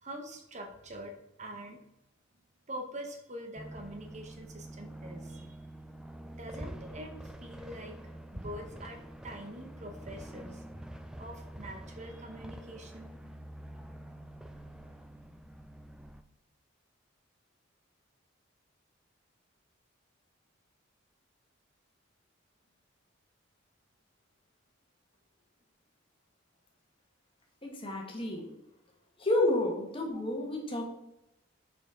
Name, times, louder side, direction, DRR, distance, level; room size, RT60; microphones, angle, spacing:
voice 1, 0.0-1.8 2.7-5.6 6.4-10.9 11.2-13.1, right 1 dB, 35° right, 4 dB, 0.9 m, -45 dB
sound 1, 3.6-16.2, right 1 dB, 5° right, 0.4 m, -46 dB
voice 2, 27.6-28.5 29.2-30.9, left 1 dB, 25° left, 0 dB, 1.6 m, -30 dB
6.3 x 5.2 x 5.0 m, 0.87 s
head